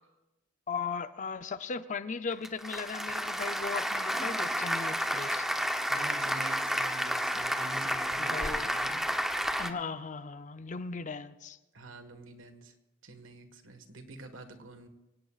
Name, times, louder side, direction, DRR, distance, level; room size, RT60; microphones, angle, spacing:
voice 1, 0.7-5.5 8.2-8.8 9.6-11.6, left 5 dB, 40° left, 11 dB, 0.6 m, -37 dB
Applause, 2.3-9.7, equal, ahead, 0.8 m, -31 dB
voice 2, 5.9-9.0 11.7-12.7 13.0-14.9, right 2 dB, 80° right, 8 dB, 1.6 m, -46 dB
24.5 x 17.5 x 2.4 m, 1.0 s
head